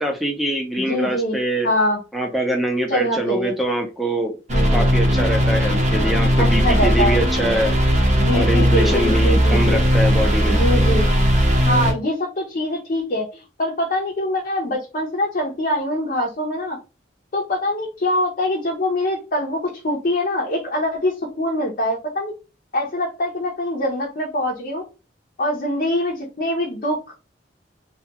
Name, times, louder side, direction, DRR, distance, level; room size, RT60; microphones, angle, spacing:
voice 1, 0.0-1.7 2.1-4.3 4.7-7.7 8.3-10.6, right 1 dB, ahead, 2 dB, 0.5 m, -23 dB
voice 2, 0.8-1.4 1.6-2.0 2.9-3.5 4.5-4.9 6.4-7.2 8.2-9.8 10.5-11.1 11.7-16.8 17.3-22.3 22.7-24.8 25.4-27.1, left 1 dB, 45° left, -2 dB, 0.6 m, -24 dB
sound 1, 4.5-11.9, equal, 40° right, 0.7 m, -18 dB
2.3 x 2.2 x 2.8 m, 0.30 s
head